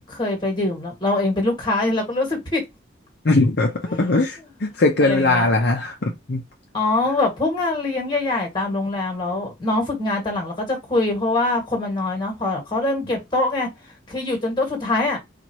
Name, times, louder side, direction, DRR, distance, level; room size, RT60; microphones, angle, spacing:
voice 1, 0.0-2.6 3.9-4.0 5.0-5.5 6.7-13.7 14.1-15.2, left 2 dB, 25° left, 1.7 m, -23 dB
voice 2, 3.2-6.4, left 2 dB, 55° left, 0.7 m, -20 dB
4.5 x 2.5 x 3.0 m
head